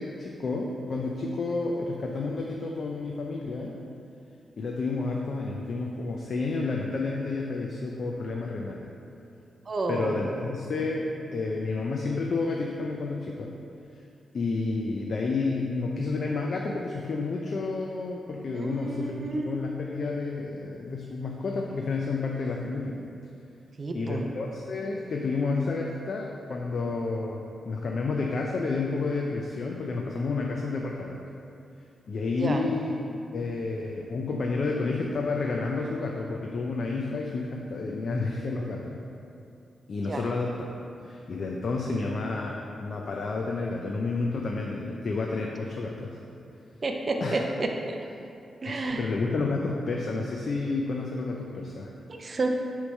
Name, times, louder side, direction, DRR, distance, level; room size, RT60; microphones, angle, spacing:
voice 1, 0.0-3.8 4.6-8.8 9.9-13.5 14.3-23.0 23.9-31.2 32.1-33.0 33.3-39.0 39.9-40.7 41.0-46.2 47.2-47.4 48.7-51.9, left 3 dB, 55° left, -1 dB, 0.4 m, -30 dB
voice 2, 9.7-10.4 18.5-19.5 23.8-24.3 32.4-32.6 40.0-40.3 46.8-48.0 48.6-49.1 49.4-49.6 52.2-52.5, right 2 dB, 35° right, 3 dB, 0.5 m, -30 dB
6.5 x 3.2 x 5.2 m, 2.6 s
wide cardioid pair, 135°, 0 cm